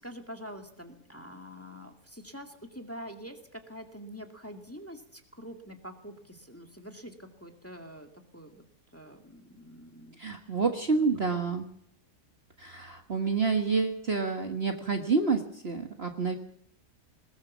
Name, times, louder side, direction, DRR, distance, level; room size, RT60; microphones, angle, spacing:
voice 1, 0.0-8.6 8.9-10.6 10.9-11.1, equal, 10° left, 4 dB, 2.1 m, -46 dB
voice 2, 10.2-11.6 12.6-16.4, right 4 dB, 40° right, 4 dB, 1.7 m, -28 dB
20.5 x 20.5 x 7.3 m, 0.66 s
omnidirectional pair, 1.8 m